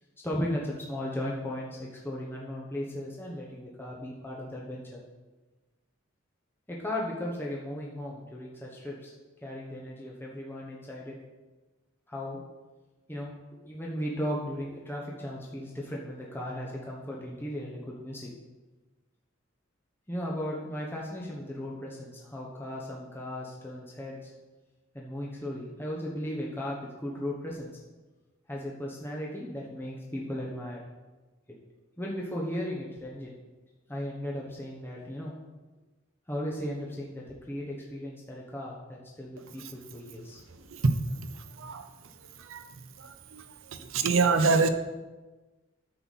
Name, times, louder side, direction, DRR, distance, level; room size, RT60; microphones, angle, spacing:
voice 1, 0.2-5.0 6.7-9.1 9.4-11.2 12.1-12.4 13.1-13.3 13.6-18.3 20.1-24.3 24.9-27.7 28.5-30.8 32.0-33.4 33.9-35.3 36.3-40.4, left 1 dB, 10° left, -4 dB, 1.1 m, -36 dB
voice 2, 43.9-44.7, right 4 dB, 80° right, 8 dB, 0.7 m, -23 dB
9.5 x 6.8 x 4.2 m, 1.2 s
head